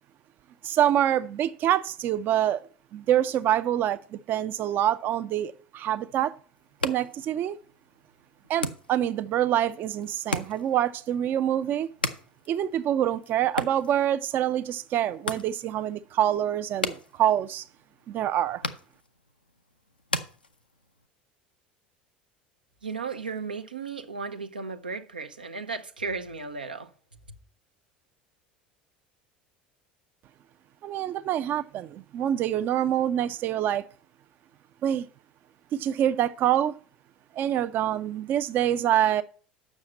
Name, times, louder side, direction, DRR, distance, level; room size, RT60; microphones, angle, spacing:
voice 1, 0.6-2.6 2.9-6.3 6.8-7.6 8.5-11.9 12.5-17.6 18.1-18.6 30.8-33.8 34.8-35.1 35.7-36.7 37.3-39.2, right 11 dB, 45° right, 0.5 m, -26 dB
sound 1, 6.6-21.1, left 3 dB, 90° left, 0.6 m, -38 dB
voice 2, 22.8-26.9, right 4 dB, 85° right, 0.6 m, -35 dB
7.3 x 6.3 x 7.5 m
figure-of-eight pair, 70°, 5 cm